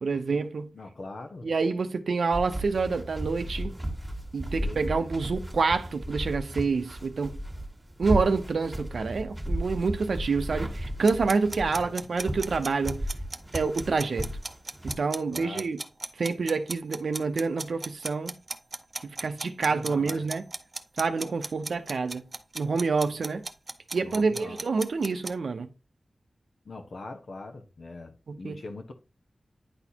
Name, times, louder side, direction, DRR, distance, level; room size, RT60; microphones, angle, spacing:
voice 1, 0.0-0.7 1.4-3.8 4.3-7.4 8.0-13.0 13.5-14.3 14.8-15.8 16.2-18.3 19.2-20.4 21.0-22.2 22.5-23.4 23.9-25.7 28.3-28.6, right 4 dB, 90° right, 0.6 m, -27 dB
voice 2, 0.7-1.5 4.5-5.1 11.7-11.9 15.3-15.7 19.7-20.3 24.0-24.6 26.6-28.9, left 3 dB, 70° left, 1.0 m, -42 dB
sound 1, 2.3-14.9, equal, 15° right, 1.4 m, -34 dB
sound 2, 11.1-25.3, right 3 dB, 40° right, 0.6 m, -36 dB
9.8 x 4.1 x 2.8 m
wide cardioid pair, 115°, 0 cm